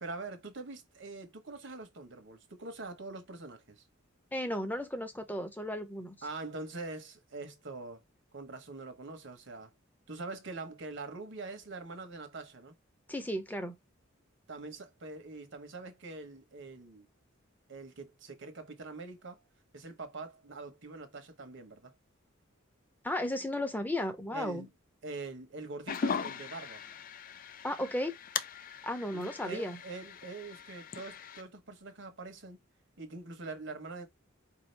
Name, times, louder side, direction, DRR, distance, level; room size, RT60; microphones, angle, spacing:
voice 1, 0.0-3.8 6.2-8.0 8.3-9.7 10.1-12.8 14.5-17.1 17.7-19.4 19.7-21.9 24.3-24.7 25.0-26.8 29.1-32.6 33.0-34.1, right 3 dB, 60° right, 1.2 m, -44 dB
voice 2, 4.3-6.1 13.1-13.8 23.0-24.7 27.6-28.2 28.8-29.8, left 1 dB, 10° left, 0.8 m, -34 dB
sound 1, 25.9-31.4, left 6 dB, 45° left, 0.4 m, -39 dB
4.8 x 2.8 x 3.3 m
head